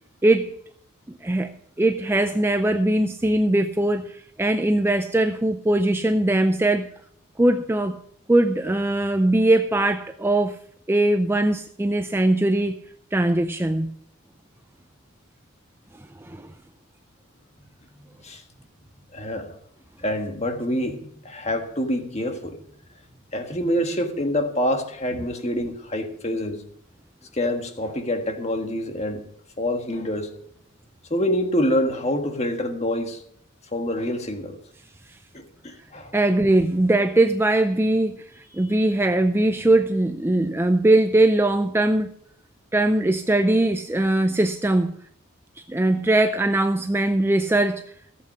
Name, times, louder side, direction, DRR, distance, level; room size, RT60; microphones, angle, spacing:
voice 1, 0.2-0.5 1.1-1.5 1.8-6.9 7.4-8.0 8.3-10.6 10.9-12.8 13.1-13.9 16.2-16.5 36.1-42.1 42.7-44.9 45.7-47.8, right 1 dB, 10° right, 0.4 m, -21 dB
voice 2, 17.9-18.4 19.1-19.6 20.0-22.6 23.3-26.6 27.3-29.2 29.6-30.3 31.1-33.2 33.7-34.6 35.3-36.1, left 1 dB, 30° left, 1.5 m, -26 dB
15.0 x 8.1 x 6.0 m
head